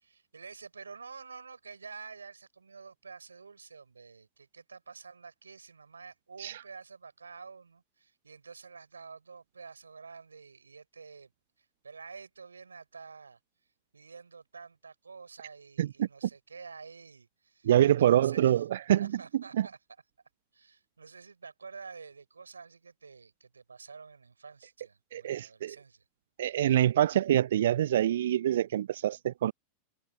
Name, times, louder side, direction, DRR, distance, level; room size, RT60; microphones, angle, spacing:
voice 1, 0.0-11.3 11.8-13.4 13.9-17.7 18.0-18.6 19.0-19.8 20.5-26.0, right 5 dB, 75° right, 5.6 m, -49 dB
voice 2, 17.6-19.1 19.5-19.7 25.1-25.8 26.4-29.5, right 11 dB, 60° right, 0.4 m, -25 dB
figure-of-eight pair, 90°, 0 cm